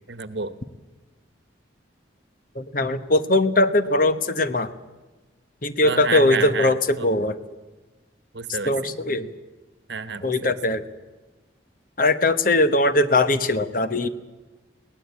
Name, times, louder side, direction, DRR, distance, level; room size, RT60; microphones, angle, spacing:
voice 1, 0.1-0.6 5.8-7.1 8.3-9.0 9.9-10.5, right 5 dB, 65° right, 13 dB, 1.2 m, -30 dB
voice 2, 2.5-4.7 5.6-7.4 8.7-9.3 10.2-10.8 12.0-14.1, left 2 dB, 45° left, 12 dB, 1.0 m, -20 dB
22.5 x 18.0 x 8.4 m, 1.2 s
head